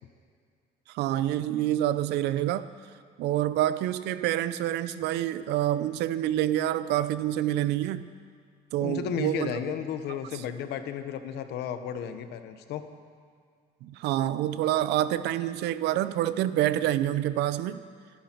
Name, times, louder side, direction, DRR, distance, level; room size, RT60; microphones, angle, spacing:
voice 1, 0.9-2.7 3.2-8.1 8.7-9.5 13.8-17.8, right 13 dB, 85° right, 14 dB, 0.6 m, -27 dB
voice 2, 8.8-12.9, left 8 dB, 80° left, 9 dB, 1.1 m, -33 dB
27.0 x 10.5 x 4.5 m, 2.1 s
cardioid pair, 110°, 17 cm